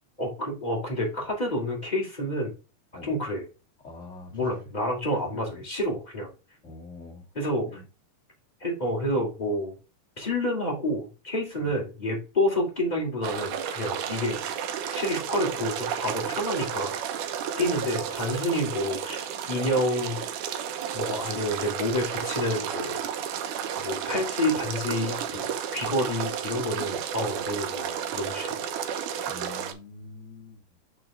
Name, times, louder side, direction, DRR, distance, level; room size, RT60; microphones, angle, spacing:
voice 1, 0.2-2.5 3.0-3.4 4.3-6.3 7.3-7.8 8.6-9.7 10.2-14.4 14.9-16.9 17.6-20.2 20.9-23.0 23.8-25.5 25.7-28.6, left 1 dB, 15° left, 2.8 m, -29 dB
voice 2, 3.8-4.6 5.2-5.6 6.6-7.2 7.7-7.8 11.6-11.7 17.6-17.9 29.3-30.6, left 2 dB, 30° left, 1.5 m, -44 dB
sound 1, 13.2-29.7, right 8 dB, 80° right, 2.3 m, -32 dB
7.4 x 4.8 x 3.6 m
omnidirectional pair, 3.6 m